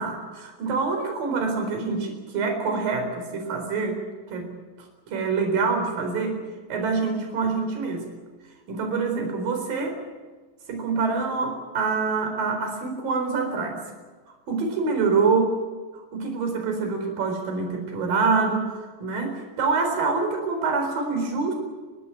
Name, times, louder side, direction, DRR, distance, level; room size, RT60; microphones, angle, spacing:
voice 1, 0.0-4.0 4.3-4.5 5.1-6.4 6.7-8.1 8.7-10.0 10.7-13.8 14.5-15.6 16.1-21.5, right 4 dB, 55° right, 3 dB, 5.7 m, -26 dB
29.5 x 12.5 x 9.1 m, 1.3 s
omnidirectional pair, 4.9 m